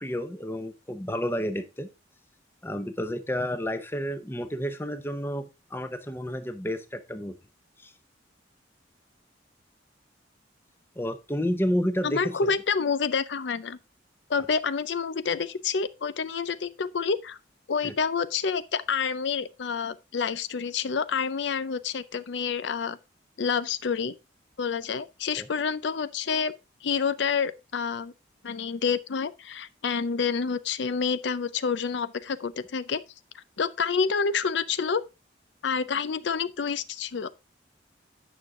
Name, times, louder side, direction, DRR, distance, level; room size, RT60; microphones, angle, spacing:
voice 1, 0.0-1.9 2.6-7.3 7.8-7.9 11.0-12.5 17.8-17.9 25.4-25.5, equal, 10° left, 0.8 m, -30 dB
voice 2, 12.0-13.8 14.3-17.4 17.7-23.0 23.4-24.1 24.6-26.5 26.8-28.1 28.4-33.0 33.3-35.0 35.6-37.3, left 5 dB, 70° left, 0.5 m, -28 dB
9.4 x 6.3 x 3.7 m
head